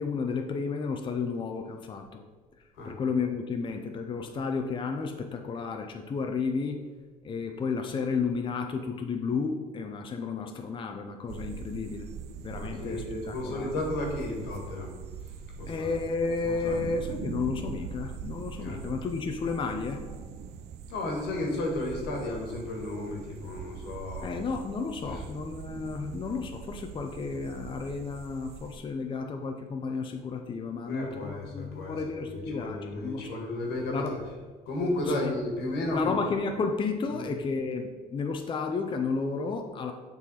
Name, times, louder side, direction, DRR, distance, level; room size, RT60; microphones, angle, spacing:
voice 1, 0.0-2.2 2.8-6.8 7.2-12.0 12.4-13.7 15.7-20.1 24.2-33.4 33.9-34.1 35.2-35.3 35.9-39.9, left 4 dB, 30° left, 4 dB, 0.5 m, -32 dB
sound 1, 11.3-28.8, right 6 dB, 75° right, 0.4 m, -42 dB
voice 2, 12.5-15.9 16.4-16.8 18.6-18.8 20.9-24.4 25.1-25.2 30.8-32.0 32.3-34.2 34.6-36.2 37.1-37.3, left 1 dB, 90° left, 0 dB, 1.6 m, -33 dB
7.2 x 4.0 x 4.1 m, 1.4 s
cardioid pair, 110°, 17 cm